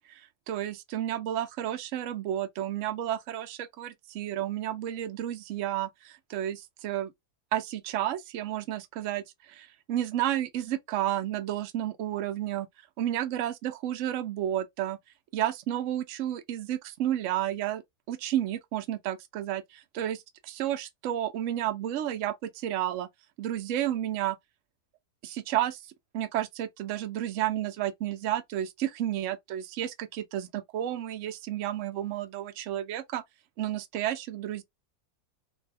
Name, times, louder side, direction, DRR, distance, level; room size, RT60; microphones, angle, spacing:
voice 1, 0.1-7.1 7.5-12.7 13.0-15.0 15.3-17.8 18.1-23.1 23.4-24.4 25.2-25.8 26.1-33.2 33.6-34.6, right 12 dB, 65° right, 0.8 m, -31 dB
2.7 x 2.3 x 3.3 m
omnidirectional pair, 1.7 m